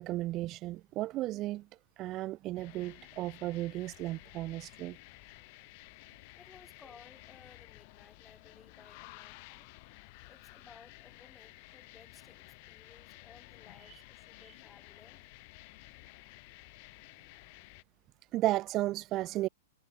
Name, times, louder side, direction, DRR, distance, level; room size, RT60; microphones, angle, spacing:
voice 1, 0.0-1.6 2.0-5.0 18.3-19.5, right 16 dB, 35° right, 0.3 m, -34 dB
sound 1, 2.5-17.8, left 28 dB, 45° left, 6.1 m, -54 dB
voice 2, 6.4-9.7 10.3-15.3, left 5 dB, 15° left, 2.7 m, -59 dB
figure-of-eight pair, 100°, 0 cm